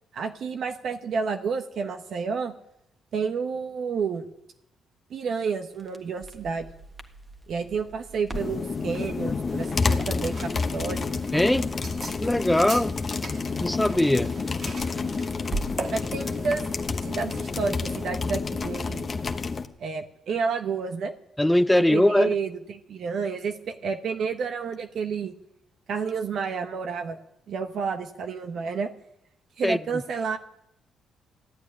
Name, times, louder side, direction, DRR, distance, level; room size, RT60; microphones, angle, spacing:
voice 1, 0.1-2.5 3.1-4.2 5.1-6.7 7.5-11.1 15.9-16.6 17.0-19.1 19.8-21.1 21.7-25.3 25.9-27.2 27.5-28.9 29.6-30.4, right 5 dB, 65° right, 1.1 m, -30 dB
Crackle, 5.7-15.9, right 2 dB, 20° right, 1.5 m, -42 dB
sound 1, 8.3-19.7, left 4 dB, 35° left, 1.1 m, -29 dB
sound 2, 9.5-18.1, right 4 dB, 45° right, 2.0 m, -41 dB
voice 2, 11.3-11.7 12.2-13.0 13.6-14.3 21.4-22.3 29.6-29.8, left 1 dB, 5° left, 0.5 m, -21 dB
14.0 x 9.1 x 9.7 m
cardioid pair, 90°, 0 cm